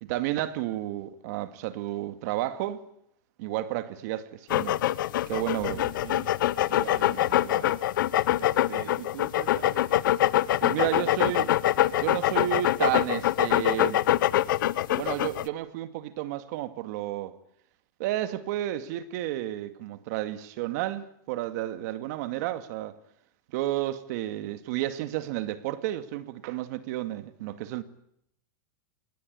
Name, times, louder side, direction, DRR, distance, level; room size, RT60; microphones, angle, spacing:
voice 1, 0.0-2.8 3.4-4.8 5.3-5.8 10.6-11.5 12.0-14.0 14.9-17.3 18.0-23.0 23.5-27.8, right 14 dB, 55° right, 2.2 m, -31 dB
sound 1, 4.5-15.5, left 13 dB, 75° left, 1.0 m, -24 dB
voice 2, 5.7-6.4 6.7-7.8 8.4-9.9 10.6-11.6, right 11 dB, 75° right, 2.5 m, -43 dB
26.0 x 20.5 x 9.7 m
supercardioid pair, 160°, 11 cm